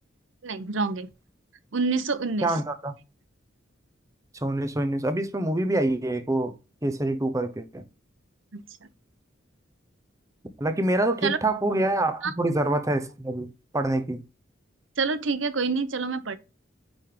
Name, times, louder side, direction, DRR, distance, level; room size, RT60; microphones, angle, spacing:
voice 1, 0.4-1.1 1.7-2.5 8.5-8.6 11.2-11.4 12.2-12.3 15.0-16.4, right 4 dB, 75° right, 0.8 m, -27 dB
voice 2, 2.4-2.9 4.4-6.5 6.8-7.8 10.6-14.2, right 1 dB, 15° right, 0.8 m, -26 dB
9.0 x 3.5 x 3.8 m
head